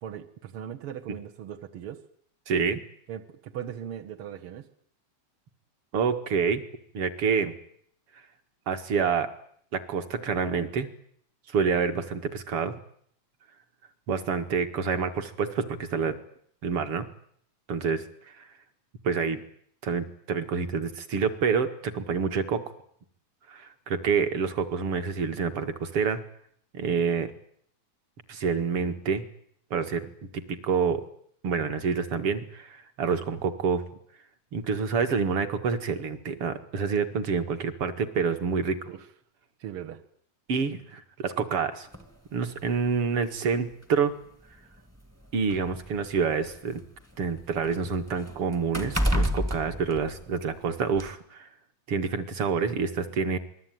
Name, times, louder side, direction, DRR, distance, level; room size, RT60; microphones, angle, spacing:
voice 1, 0.0-2.0 3.1-4.7 38.9-39.1 39.6-40.0, right 9 dB, 60° right, 3 dB, 1.5 m, -39 dB
voice 2, 2.5-2.8 5.9-6.6 6.9-7.5 8.7-9.3 9.7-10.9 11.5-12.7 14.1-16.2 16.6-17.1 17.7-18.0 18.4-18.5 19.0-19.4 19.8-22.6 23.5-26.2 26.7-27.3 28.3-29.2 29.7-30.1 30.3-31.0 31.4-33.8 34.5-38.9 40.5-41.9 42.3-44.1 45.3-46.8 47.2-51.5 51.9-53.4, right 5 dB, 45° right, 8 dB, 2.2 m, -27 dB
sound 1, 41.9-42.1 43.1-43.2 43.7-43.8 44.8-46.7 47.1-50.6 51.0-51.1, equal, 5° right, 1.2 m, -30 dB
27.0 x 20.0 x 9.3 m, 0.66 s
omnidirectional pair, 4.3 m